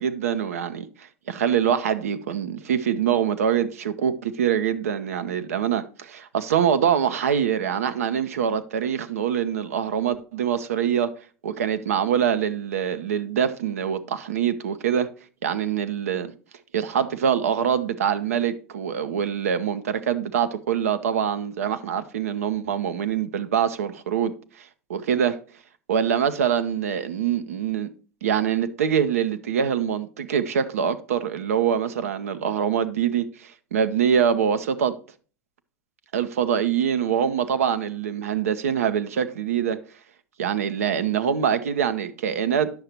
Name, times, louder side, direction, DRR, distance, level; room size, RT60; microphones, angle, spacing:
voice 1, 0.0-11.1 11.4-15.1 15.4-16.3 16.7-24.3 24.9-25.4 25.9-27.9 28.2-35.0 36.1-39.8 40.4-42.7, right 8 dB, 80° right, 0.8 m, -24 dB
9.8 x 6.6 x 2.9 m
hypercardioid pair, 90°, 8 cm